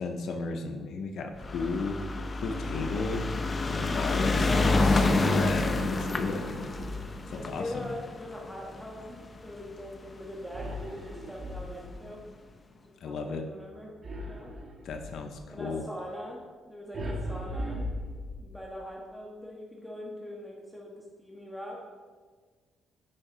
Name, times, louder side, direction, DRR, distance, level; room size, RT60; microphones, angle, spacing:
voice 1, 0.0-2.0 2.3-3.2 3.7-4.5 4.8-6.5 7.3-7.9 13.0-13.5 14.8-15.8, left 4 dB, 65° left, 4 dB, 0.7 m, -34 dB
sound 1, 1.4-9.9 10.7-10.8 11.0-11.1 11.3-11.4, left 3 dB, 30° left, 0.6 m, -28 dB
voice 2, 4.3-4.7 7.2-12.2 13.0-13.9 14.2-14.5 15.5-17.8 18.4-21.8, left 1 dB, ahead, -3 dB, 1.3 m, -42 dB
sound 2, 5.8-7.3 10.5-12.1 14.0-15.2 16.9-18.6, equal, 45° right, 1.5 m, -38 dB
9.9 x 4.9 x 3.9 m, 1.5 s
cardioid pair, 90°, 0 cm